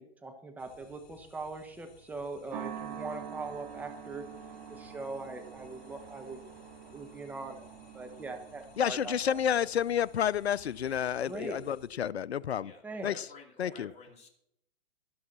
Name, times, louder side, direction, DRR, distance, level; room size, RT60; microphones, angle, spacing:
voice 1, 0.0-4.3 4.7-6.4 6.9-7.7 7.9-9.4 11.3-11.6 12.8-13.1 13.6-13.7, right 3 dB, 5° right, 1.1 m, -41 dB
sound 1, 0.6-11.9, left 7 dB, 45° left, 2.2 m, -60 dB
sound 2, 2.5-11.0, right 8 dB, 35° right, 3.2 m, -46 dB
sound 3, 3.1-10.8, right 5 dB, 65° right, 2.5 m, -60 dB
voice 2, 8.8-12.7 13.0-13.1 13.6-13.9, left 9 dB, 80° left, 0.6 m, -30 dB
voice 3, 12.6-14.3, left 3 dB, 20° left, 2.6 m, -52 dB
12.5 x 12.0 x 4.3 m
figure-of-eight pair, 120°, 31 cm